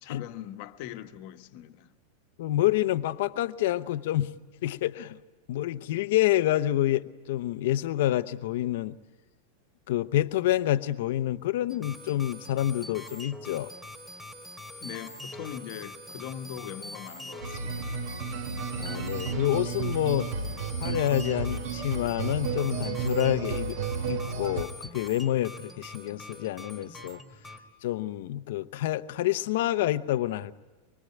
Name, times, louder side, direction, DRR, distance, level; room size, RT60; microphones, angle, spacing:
voice 1, 0.0-1.9 14.8-18.0, left 11 dB, 40° left, 1.2 m, -41 dB
voice 2, 2.4-4.3 4.6-5.2 5.5-8.9 9.9-13.7 18.8-20.3 20.8-23.8 24.1-27.2 27.8-30.5, left 13 dB, 55° left, 0.7 m, -28 dB
sound 1, 11.7-27.6, left 1 dB, ahead, 2.4 m, -44 dB
sound 2, 17.4-24.6, right 5 dB, 45° right, 2.0 m, -32 dB
25.0 x 23.0 x 9.2 m
supercardioid pair, 175°, 0 cm